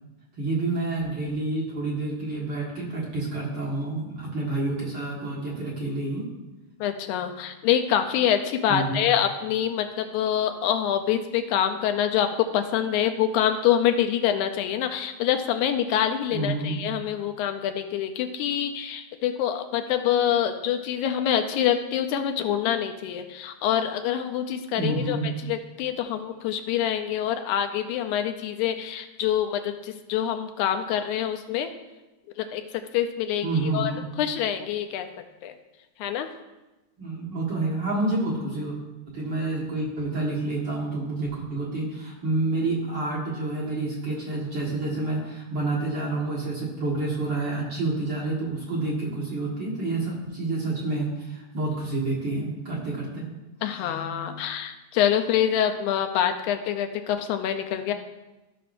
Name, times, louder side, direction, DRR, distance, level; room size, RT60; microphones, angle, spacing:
voice 1, 0.4-6.2 8.7-9.0 16.3-16.8 24.8-25.3 33.4-34.1 37.0-38.8 39.1-53.3 53.7-53.9, right 2 dB, 45° right, -5 dB, 1.7 m, -28 dB
voice 2, 6.8-12.3 12.5-25.2 25.5-31.7 32.4-32.6 32.9-33.5 33.7-33.9 34.2-35.1 35.4-35.5 36.0-36.3 53.6-57.9, left 10 dB, 85° left, 7 dB, 2.0 m, -25 dB
14.0 x 5.9 x 2.5 m, 1.0 s
omnidirectional pair, 3.5 m